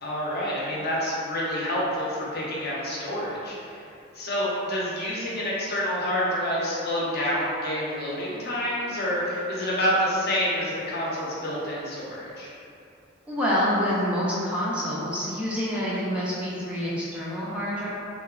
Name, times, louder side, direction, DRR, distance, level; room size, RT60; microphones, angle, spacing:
voice 1, 0.0-3.8 4.1-12.5, equal, 50° left, -6 dB, 0.6 m, -28 dB
voice 2, 13.3-17.9, equal, 5° right, -9 dB, 0.3 m, -27 dB
2.9 x 2.0 x 2.3 m, 2.5 s
head